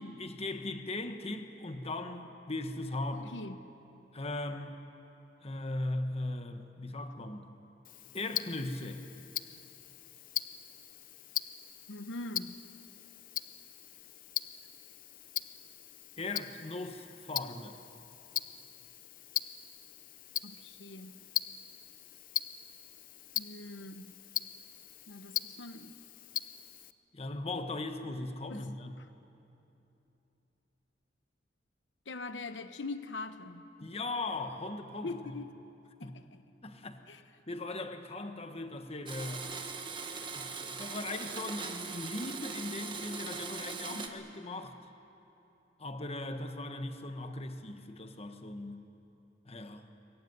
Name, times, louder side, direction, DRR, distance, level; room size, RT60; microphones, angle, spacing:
voice 1, 0.2-3.3 4.1-4.8 5.4-7.5 8.1-9.1 16.2-17.8 27.1-29.0 33.8-35.4 36.0-36.2 36.6-37.0 37.5-39.5 40.3-44.8 45.8-48.8 49.5-49.9, left 2 dB, 35° left, 7 dB, 1.3 m, -38 dB
voice 2, 3.1-3.6 11.9-12.6 20.4-21.2 23.3-24.1 25.1-26.0 28.5-28.7 29.0-29.1 32.1-33.7 35.0-35.5 36.0-36.4 37.1-37.2 43.9-44.3, left 2 dB, 80° left, 10 dB, 0.9 m, -43 dB
Tick-tock, 7.8-26.9, left 11 dB, 50° left, 0.6 m, -41 dB
Domestic sounds home sounds, 39.1-44.1, right 4 dB, 25° right, 1.6 m, -40 dB
23.0 x 20.5 x 9.6 m, 3.0 s
head